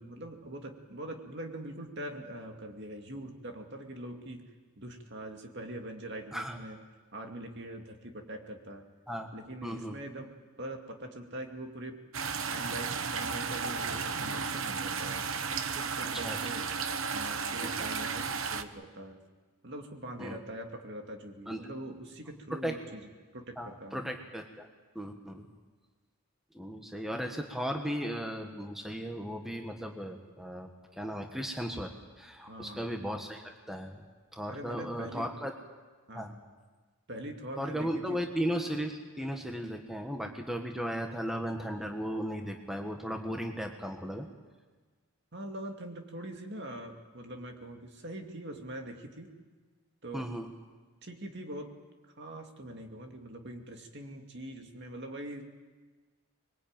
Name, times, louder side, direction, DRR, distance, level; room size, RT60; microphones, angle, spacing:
voice 1, 0.0-4.4 4.8-6.8 7.1-8.8 9.3-10.3 10.6-12.0 12.5-15.2 15.7-16.7 17.1-19.2 19.6-23.0 23.3-24.1 32.4-32.9 34.5-35.3 36.1-36.4 37.1-38.2 45.3-49.3 50.0-50.3 51.0-51.7 52.2-55.4, right 1 dB, 50° right, 3 dB, 2.5 m, -43 dB
voice 2, 9.6-10.0 16.2-16.4 17.6-17.9 20.2-20.4 21.5-21.6 22.5-22.8 23.6-24.7 24.9-25.5 26.5-31.9 32.2-34.0 34.3-35.5 36.1-36.3 37.6-44.3 50.1-50.5, equal, ahead, 3 dB, 1.5 m, -36 dB
sound 1, 12.1-18.6, right 5 dB, 70° right, 1.1 m, -34 dB
25.5 x 22.0 x 9.1 m, 1.4 s
head